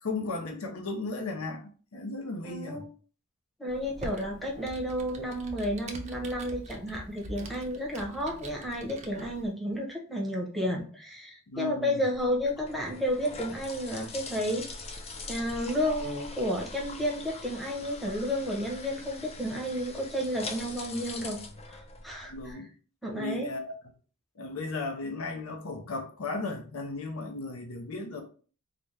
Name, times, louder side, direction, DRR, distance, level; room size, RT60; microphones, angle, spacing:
voice 1, 0.0-2.8 11.5-12.0 22.2-22.7 23.1-23.7 24.4-28.2, left 3 dB, 75° left, 0.7 m, -35 dB
voice 2, 2.4-2.9 3.6-15.0 15.3-21.4 21.7-22.6 23.0-23.5, equal, ahead, 0.8 m, -32 dB
Computer keyboard, 3.7-9.5, right 1 dB, 30° right, 0.5 m, -44 dB
sound 1, 12.1-22.5, left 3 dB, 30° left, 0.4 m, -43 dB
4.0 x 2.2 x 3.2 m
head